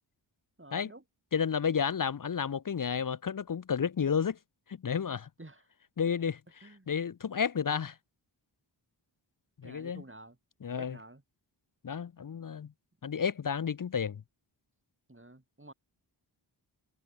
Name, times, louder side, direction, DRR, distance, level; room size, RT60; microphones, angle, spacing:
voice 1, 0.6-1.0 5.4-5.7 6.6-6.9 9.6-10.4 10.7-11.2 12.6-12.7 15.1-15.7, right 2 dB, 25° right, 6.2 m, -50 dB
voice 2, 1.3-4.4 4.7-5.3 6.0-6.4 6.9-8.0 9.6-10.0 10.6-10.9 11.8-12.7 13.0-14.2, left 7 dB, 45° left, 0.6 m, -31 dB
cardioid pair, 45°, 47 cm